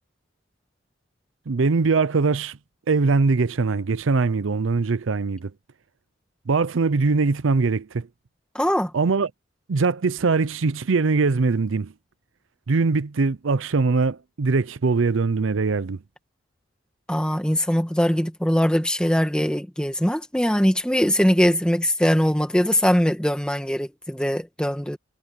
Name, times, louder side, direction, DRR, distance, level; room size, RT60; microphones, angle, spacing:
voice 1, 1.5-2.6 2.9-5.5 6.5-8.1 8.9-9.3 9.7-11.9 12.7-16.0, right 4 dB, 85° right, 0.6 m, -22 dB
voice 2, 8.5-8.9 17.1-25.0, equal, 5° left, 2.1 m, -21 dB
head